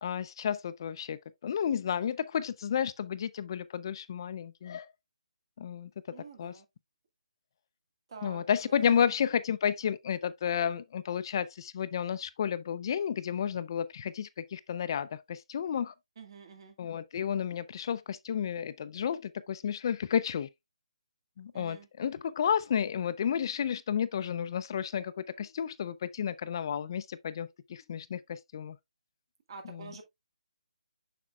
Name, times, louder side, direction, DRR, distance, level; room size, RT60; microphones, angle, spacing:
voice 1, 0.0-4.9 5.6-5.9 6.4-6.5 8.2-15.9 16.8-20.5 21.4-28.8 29.6-29.9, left 8 dB, 40° left, 0.4 m, -32 dB
voice 2, 6.1-6.7 8.1-9.0 16.2-16.8 21.5-21.9 29.5-30.0, right 5 dB, 45° right, 1.9 m, -48 dB
7.3 x 6.0 x 2.3 m
hypercardioid pair, 155°, 4 cm